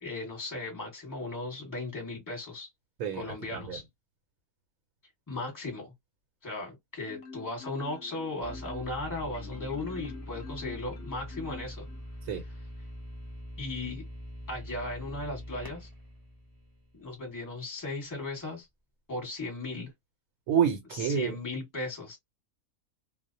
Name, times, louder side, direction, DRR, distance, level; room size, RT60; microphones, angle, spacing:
voice 1, 0.0-2.7 3.1-3.8 5.3-5.9 6.4-11.8 13.6-14.0 14.5-15.9 16.9-18.7 19.1-19.9 21.1-22.2, left 2 dB, 15° left, 1.0 m, -36 dB
Marimba xylophone, 7.1-12.2, left 5 dB, 60° left, 0.8 m, -46 dB
sound 1, 8.4-17.3, equal, 20° right, 0.7 m, -43 dB
voice 2, 20.5-21.4, right 8 dB, 85° right, 1.1 m, -28 dB
2.4 x 2.1 x 2.5 m
omnidirectional pair, 1.5 m